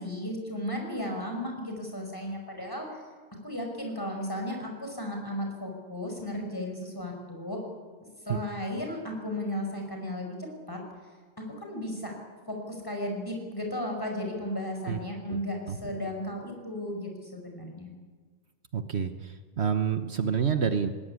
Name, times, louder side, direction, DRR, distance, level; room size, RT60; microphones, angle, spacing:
voice 1, 0.0-2.9 3.4-7.6 8.0-10.4 10.7-10.8 11.6-12.1 12.5-17.9, left 1 dB, 20° left, 2 dB, 5.5 m, -35 dB
voice 2, 18.7-20.9, right 7 dB, 65° right, 8 dB, 1.3 m, -28 dB
19.5 x 17.5 x 9.8 m, 1.5 s
omnidirectional pair, 1.2 m